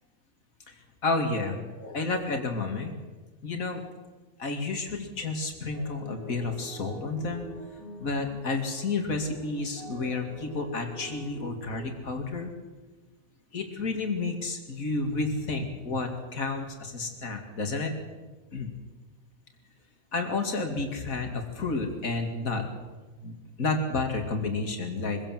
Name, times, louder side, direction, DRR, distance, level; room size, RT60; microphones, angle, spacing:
voice 1, 0.7-2.9 3.4-3.8 4.4-7.5 8.0-12.5 13.5-17.9 18.5-18.7 20.1-22.6 23.2-25.2, left 3 dB, 80° left, 4 dB, 2.8 m, -31 dB
sound 1, 5.7-11.9, right 2 dB, 40° right, 2.9 m, -44 dB
24.0 x 16.5 x 7.5 m, 1.3 s
omnidirectional pair, 1.4 m